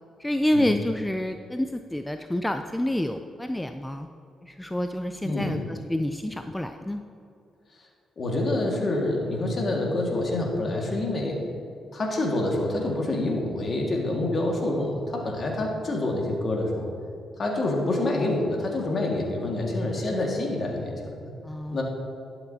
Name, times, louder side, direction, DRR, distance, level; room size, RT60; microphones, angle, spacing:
voice 1, 0.2-4.1 4.4-7.0 21.4-21.8, left 1 dB, 10° left, 7 dB, 0.3 m, -28 dB
voice 2, 5.2-5.6 8.2-11.4 11.9-16.9 17.4-21.3 21.7-21.8, left 2 dB, 50° left, 0 dB, 1.8 m, -27 dB
11.5 x 6.8 x 2.8 m, 2.6 s
supercardioid pair, 60°, 0 cm